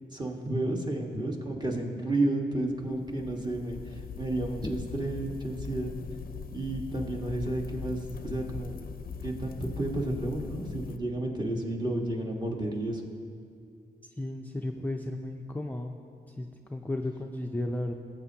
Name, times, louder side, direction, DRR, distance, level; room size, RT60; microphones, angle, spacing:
voice 1, 0.1-5.9 6.5-8.8 9.2-13.0, right 1 dB, 25° right, 0 dB, 1.5 m, -31 dB
sound 1, 2.7-11.0, left 6 dB, 60° left, 0.5 m, -41 dB
voice 2, 14.2-16.0 16.4-17.9, left 1 dB, 10° left, 2 dB, 0.5 m, -34 dB
18.5 x 7.7 x 2.8 m, 2.3 s
cardioid pair, 100°, 17 cm